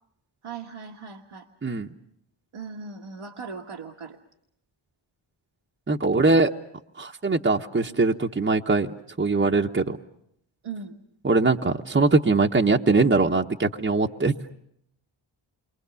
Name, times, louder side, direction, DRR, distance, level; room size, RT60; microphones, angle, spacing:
voice 1, 0.4-1.5 2.5-4.2 10.6-11.0, right 5 dB, 80° right, 0 dB, 1.7 m, -38 dB
voice 2, 5.9-6.5 7.0-8.9 9.2-10.0 11.2-14.3, right 3 dB, 25° right, 1 dB, 1.0 m, -21 dB
28.5 x 23.5 x 7.0 m, 0.75 s
cardioid pair, 60°, 50 cm